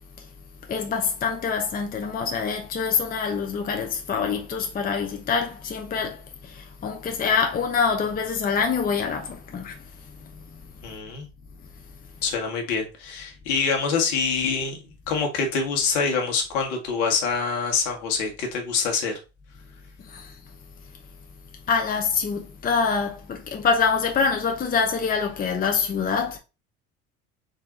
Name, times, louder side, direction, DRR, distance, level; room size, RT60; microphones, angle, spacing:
voice 1, 0.7-6.2 6.5-9.8 20.1-20.3 21.7-26.4, left 5 dB, 20° left, 0.7 m, -25 dB
voice 2, 10.8-11.3 12.2-19.1, left 5 dB, 60° left, 1.4 m, -25 dB
3.9 x 2.7 x 3.8 m
figure-of-eight pair, 65°, 41 cm